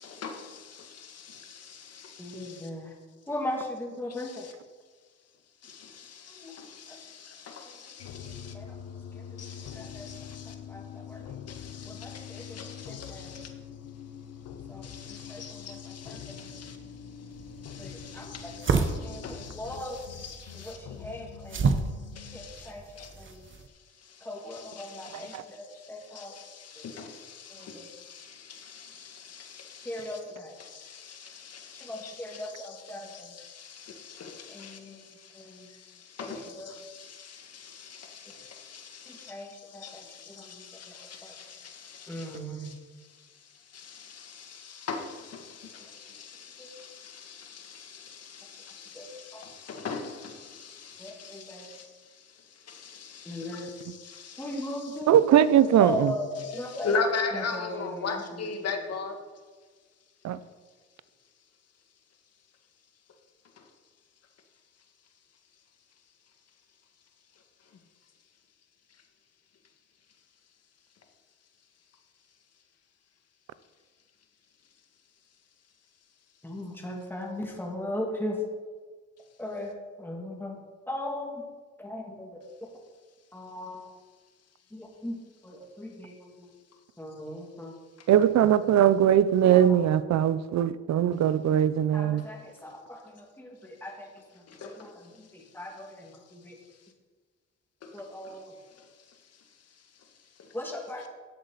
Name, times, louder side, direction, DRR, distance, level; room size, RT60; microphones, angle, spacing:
voice 1, 0.0-2.7 4.1-4.5 5.6-8.5 9.4-10.6 11.5-13.5 14.8-16.8 17.6-20.8 22.1-23.3 24.0-30.2 30.6-55.0 56.4-59.2 63.6-63.7 88.0-88.1 94.5-94.9 97.8-99.2 100.0-100.1 100.4-100.6, left 4 dB, 55° left, 1.8 m, -41 dB
voice 2, 2.2-2.9 3.3-4.5 6.3-6.5 6.9-7.0 8.5-8.7 9.1-9.2 9.7-10.1 10.7-11.2 11.9-12.6 12.9-13.3 14.7-15.8 16.1-16.4 17.8-20.0 20.5-21.7 22.3-22.8 23.2-23.4 24.2-26.4 27.5-27.9 29.8-30.5 31.7-33.3 34.5-35.0 35.3-35.7 36.2-36.7 39.1-40.9 41.2-41.3 42.1-42.7 46.6-46.7 48.9-49.1 49.3-49.4 51.0-51.7 53.3-53.7 54.4-55.1 55.8-56.3 56.5-56.9 57.3-58.5 76.4-78.4 79.4-80.6 80.9-81.4 81.8-82.4 83.3-83.8 84.7-85.2 85.4-86.5 87.0-87.7 91.9-94.1 94.3-96.6 97.9-98.5 100.5-101.1, left 1 dB, 5° left, 2.6 m, -38 dB
sound 1, 8.0-22.4, left 8 dB, 85° left, 1.0 m, -44 dB
Dragon Wing Flap, 17.3-23.7, right 4 dB, 40° right, 1.1 m, -32 dB
voice 3, 25.1-25.4 55.1-56.2 60.2-60.4 88.1-92.3, right 10 dB, 65° right, 0.7 m, -21 dB
13.5 x 8.1 x 4.1 m
cardioid pair, 90°, 30 cm